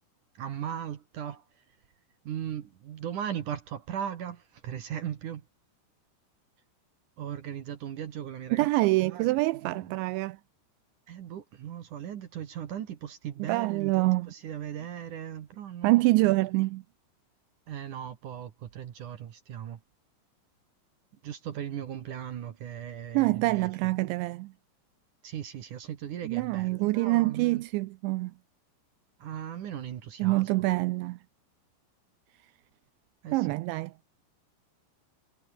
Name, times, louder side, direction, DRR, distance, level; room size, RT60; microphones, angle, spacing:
voice 1, 0.4-1.4 2.2-5.4 7.2-8.7 9.0-9.3 9.6-9.9 11.1-16.4 17.7-19.8 21.2-23.7 25.2-27.6 29.2-30.9 33.2-33.5, right 9 dB, 60° right, 2.3 m, -38 dB
voice 2, 8.5-10.4 13.4-14.3 15.8-16.8 23.1-24.5 26.2-28.3 30.2-31.2 33.3-34.2, right 21 dB, 80° right, 2.9 m, -26 dB
omnidirectional pair, 5.3 m